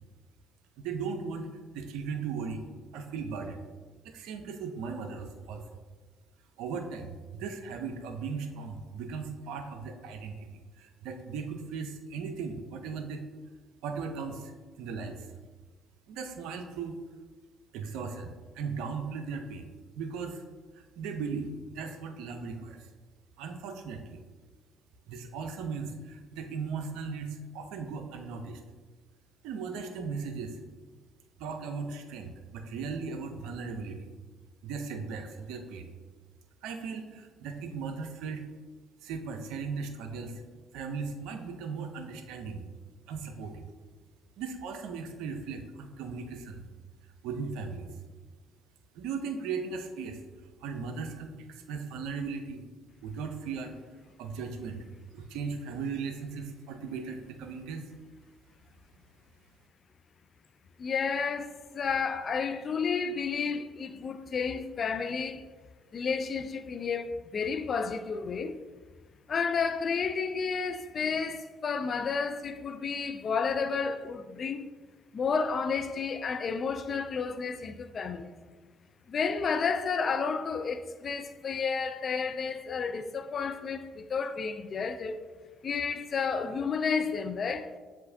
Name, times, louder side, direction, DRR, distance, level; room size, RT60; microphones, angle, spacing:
voice 1, 0.8-1.5 1.7-2.6 2.9-3.6 4.0-5.6 6.6-10.5 10.8-13.3 13.8-15.3 16.1-16.9 17.7-19.7 19.9-20.4 21.0-22.9 23.4-24.2 25.1-28.6 29.4-30.6 31.4-34.1 34.6-35.9 36.6-38.5 39.0-40.4 40.7-42.6 43.1-43.6 44.4-46.6 47.2-47.9 48.9-50.2 50.6-52.6 53.0-53.7 54.2-54.9 55.1-57.8, right 5 dB, 75° right, 0.5 m, -37 dB
voice 2, 60.8-65.4 65.9-68.6 69.3-74.7 75.1-78.3 79.1-85.2 85.6-87.7, left 5 dB, 50° left, 0.3 m, -31 dB
7.5 x 2.5 x 2.6 m
hypercardioid pair, 55°, 0 cm